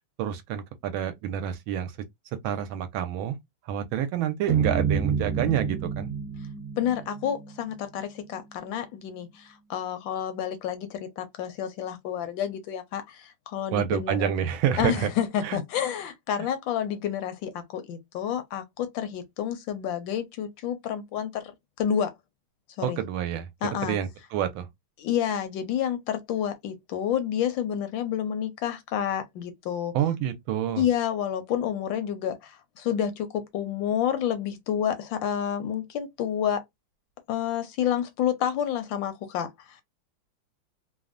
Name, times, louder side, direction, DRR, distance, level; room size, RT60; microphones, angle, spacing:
voice 1, 0.2-1.9 2.4-3.4 3.7-6.1 13.7-15.1 15.4-15.6 16.4-16.5 22.8-23.5 23.8-24.7 29.9-30.8, right 10 dB, 75° right, 1.3 m, -28 dB
sound 1, 4.5-8.9, right 7 dB, 50° right, 1.2 m, -29 dB
voice 2, 6.8-14.3 14.8-21.5 21.8-22.1 22.8-23.0 23.6-24.0 25.0-29.9 30.8-36.6 37.3-39.8, left 9 dB, 75° left, 1.2 m, -29 dB
3.4 x 2.0 x 2.4 m
omnidirectional pair, 2.3 m